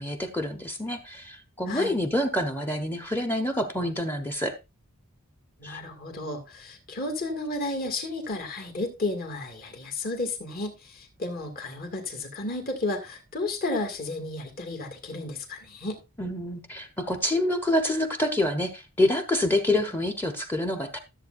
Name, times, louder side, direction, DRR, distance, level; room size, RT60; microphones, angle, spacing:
voice 1, 0.0-4.5 5.6-5.8 16.2-21.0, left 1 dB, 10° left, 0.9 m, -27 dB
voice 2, 5.6-16.0, left 2 dB, 45° left, 2.2 m, -33 dB
14.0 x 7.6 x 2.6 m
head